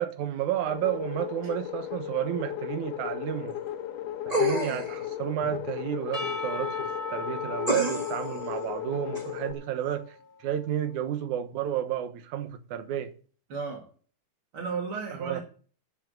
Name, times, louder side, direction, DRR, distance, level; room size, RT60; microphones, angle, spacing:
voice 1, 0.0-3.5 4.3-10.0 10.4-13.1 15.2-15.4, right 10 dB, 70° right, 2.5 m, -31 dB
sound 1, 0.7-9.5, left 11 dB, 90° left, 2.7 m, -36 dB
sound 2, 4.3-5.0 7.7-8.3 9.1-9.2, left 1 dB, 15° right, 1.6 m, -28 dB
Percussion / Church bell, 6.1-10.5, left 3 dB, 50° left, 0.7 m, -38 dB
voice 2, 13.5-13.9 14.5-15.4, right 5 dB, 45° right, 3.0 m, -34 dB
13.0 x 6.3 x 7.7 m
omnidirectional pair, 3.7 m